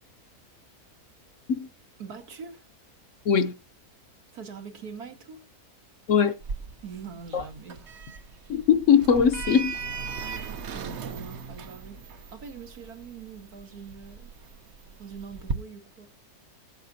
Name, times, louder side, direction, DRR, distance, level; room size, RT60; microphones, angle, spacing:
voice 1, 2.0-2.7 4.3-5.5 6.8-7.9 10.2-14.3 15.0-16.1, right 6 dB, 75° right, 2.1 m, -43 dB
Sliding door, 6.4-15.5, right 4 dB, 55° right, 1.0 m, -38 dB
voice 2, 8.5-9.8, left 7 dB, 60° left, 1.0 m, -20 dB
19.5 x 7.6 x 2.7 m
omnidirectional pair, 1.6 m